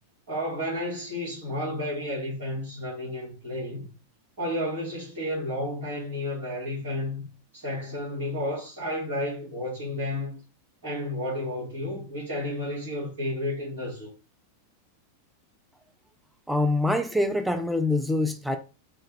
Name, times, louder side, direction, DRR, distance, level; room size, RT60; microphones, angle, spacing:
voice 1, 0.3-3.9 4.4-7.3 7.5-10.4 10.8-14.1, left 1 dB, 55° right, 1.7 m, -32 dB
voice 2, 16.5-18.6, left 2 dB, 5° right, 0.4 m, -25 dB
3.3 x 2.2 x 3.3 m
figure-of-eight pair, 90°, 0 cm